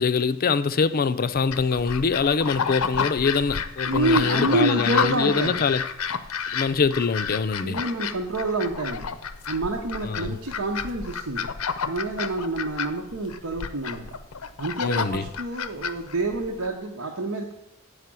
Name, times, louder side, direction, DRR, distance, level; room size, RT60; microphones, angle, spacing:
voice 1, 0.0-5.8 6.5-7.8 10.0-10.3 14.8-15.2, left 5 dB, 45° left, 0.4 m, -24 dB
sound 1, 1.5-16.7, left 6 dB, 80° left, 0.6 m, -30 dB
voice 2, 3.9-5.6 7.6-9.1 9.5-11.5 11.9-14.0 14.6-17.5, right 2 dB, 85° right, 1.0 m, -27 dB
8.2 x 5.0 x 7.5 m
head